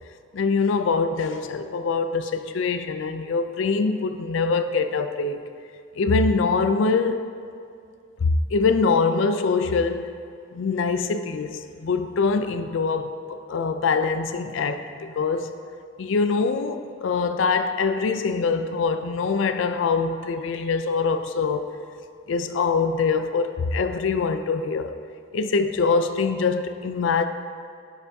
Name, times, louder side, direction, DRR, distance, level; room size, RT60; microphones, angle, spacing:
voice 1, 0.3-5.4 6.0-7.3 8.2-10.1 10.5-13.1 13.5-15.5 16.0-21.7 22.3-25.0 25.3-27.3, left 4 dB, 75° left, 0.4 m, -23 dB
11.0 x 5.7 x 2.7 m
head